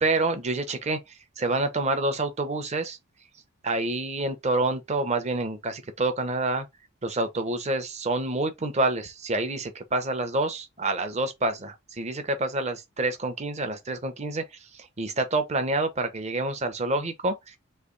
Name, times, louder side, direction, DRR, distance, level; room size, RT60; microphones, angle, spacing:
voice 1, 0.0-1.0 1.4-3.0 3.6-6.7 7.0-14.4 14.7-17.6, right 2 dB, 30° right, 0.8 m, -27 dB
3.3 x 3.1 x 3.9 m
head